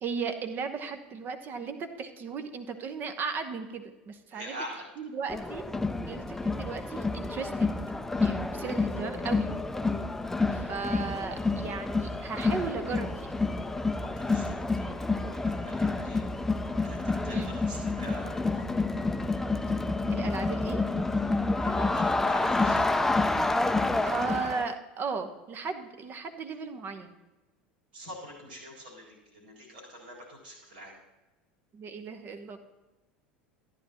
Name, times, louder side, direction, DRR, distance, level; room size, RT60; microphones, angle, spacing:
voice 1, 0.0-4.6 5.0-5.6 6.0-7.7 8.2-9.5 10.5-13.3 17.3-17.5 20.1-20.8 24.0-27.1 31.7-32.6, right 5 dB, 40° right, 9 dB, 1.0 m, -36 dB
voice 2, 4.3-4.8 14.0-16.2 16.8-18.6 21.6-23.0 27.9-30.9, equal, 75° right, -3 dB, 3.9 m, -45 dB
Crowd, 5.3-24.7, left 3 dB, 5° left, 0.5 m, -29 dB
14.0 x 9.8 x 2.9 m, 1.1 s
figure-of-eight pair, 75°, 5 cm